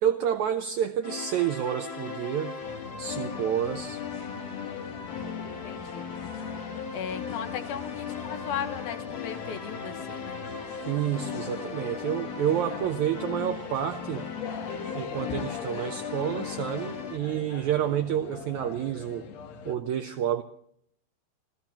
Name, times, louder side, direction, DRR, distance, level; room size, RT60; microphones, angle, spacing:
voice 1, 0.0-2.6 3.0-4.0 10.8-14.3 14.9-19.3 19.6-20.4, right 10 dB, 80° right, 1.7 m, -29 dB
sound 1, 1.0-17.2, left 6 dB, 50° left, 3.2 m, -37 dB
sound 2, 2.6-19.8, left 7 dB, 65° left, 1.8 m, -42 dB
voice 2, 5.6-6.1 6.9-10.4 12.6-12.8 17.3-17.5, left 7 dB, 80° left, 3.1 m, -37 dB
28.5 x 15.0 x 3.0 m
omnidirectional pair, 4.3 m